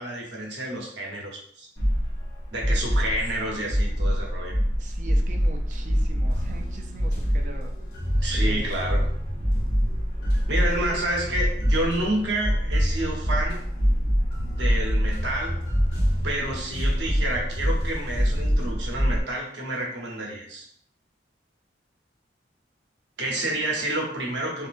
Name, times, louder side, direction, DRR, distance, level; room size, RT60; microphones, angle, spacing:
voice 1, 0.0-1.7 2.5-4.6 8.2-9.0 10.5-13.7 14.4-15.6 16.2-20.7 23.2-24.7, right 1 dB, 85° right, -1 dB, 0.8 m, -29 dB
sound 1, 1.8-19.2, equal, 30° left, 1.3 m, -25 dB
voice 2, 4.8-7.7 8.3-8.8, right 2 dB, 45° right, 4 dB, 0.4 m, -41 dB
sound 2, 6.3-19.1, equal, 50° left, 1.0 m, -37 dB
3.1 x 2.7 x 2.5 m, 0.64 s
head